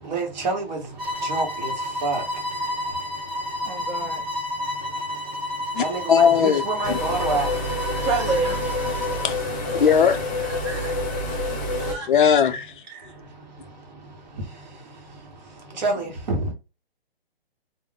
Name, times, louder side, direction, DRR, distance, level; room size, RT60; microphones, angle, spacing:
voice 1, 0.1-0.8 1.2-1.7 2.0-2.2 5.8-7.5 15.8-16.5, right 3 dB, 45° right, 1.1 m, -26 dB
sound 1, 1.0-9.4, left 1 dB, 10° right, 1.4 m, -31 dB
voice 2, 3.6-4.2 5.8-6.0 6.5-6.9 7.7-9.1 9.3-10.2 10.6-11.0 11.3-11.4 11.8-12.1, right 4 dB, 30° right, 0.7 m, -31 dB
voice 3, 5.7-6.6 6.9-7.0 9.2-9.4 9.7-10.2 12.1-12.8, left 7 dB, 55° left, 0.4 m, -18 dB
sound 2, 6.8-11.9, left 1 dB, 20° left, 0.8 m, -28 dB
2.4 x 2.0 x 3.8 m
hypercardioid pair, 155°, 31 cm